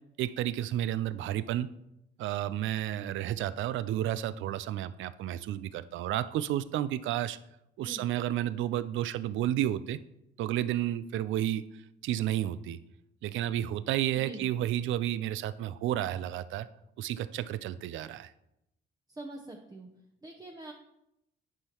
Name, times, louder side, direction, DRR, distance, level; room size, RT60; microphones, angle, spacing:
voice 1, 0.2-1.7 2.2-7.4 7.8-10.0 10.4-11.6 12.0-12.8 13.2-16.7 17.0-18.3, right 12 dB, 75° right, 15 dB, 0.4 m, -31 dB
voice 2, 19.2-19.9 20.2-20.7, right 2 dB, 20° right, 2 dB, 0.8 m, -44 dB
9.8 x 5.6 x 3.0 m, 0.85 s
cardioid pair, 90°, 20 cm